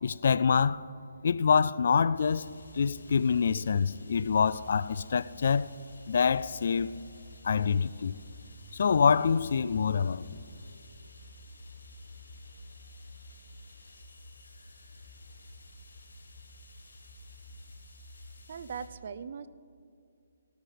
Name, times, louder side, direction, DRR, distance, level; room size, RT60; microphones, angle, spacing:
voice 1, 0.0-0.8 1.2-2.4 2.7-5.7 6.1-7.0 7.4-8.1 8.7-10.2, left 6 dB, 60° left, 0.3 m, -26 dB
sound 1, 2.1-18.9, left 1 dB, 85° left, 3.7 m, -50 dB
voice 2, 18.5-19.5, right 6 dB, 50° right, 0.5 m, -39 dB
17.5 x 13.0 x 3.3 m
hypercardioid pair, 155°, 0 cm